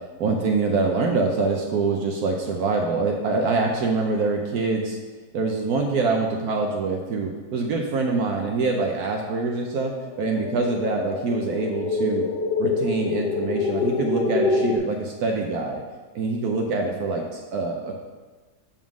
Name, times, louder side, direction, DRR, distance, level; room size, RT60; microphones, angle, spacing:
voice 1, 0.2-5.0 5.3-12.3 12.6-15.8 16.1-17.9, right 3 dB, 70° right, 1 dB, 1.2 m, -25 dB
sound 1, 9.6-14.8, left 4 dB, 85° left, 1.3 m, -26 dB
7.2 x 3.7 x 6.1 m, 1.3 s
omnidirectional pair, 1.8 m